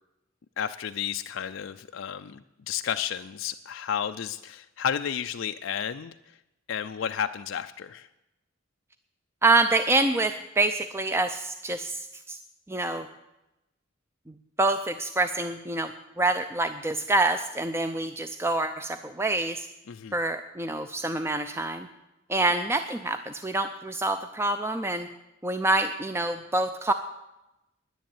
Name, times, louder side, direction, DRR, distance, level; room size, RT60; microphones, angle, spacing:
voice 1, 0.6-6.1 6.7-8.1 19.9-20.2, left 8 dB, 65° left, 8 dB, 0.4 m, -32 dB
voice 2, 9.4-12.4 12.7-13.1 14.3-15.9 16.2-19.7 20.1-21.9 22.3-25.1 25.4-26.9, right 2 dB, 10° right, 9 dB, 0.4 m, -26 dB
10.5 x 10.0 x 9.0 m, 0.93 s
head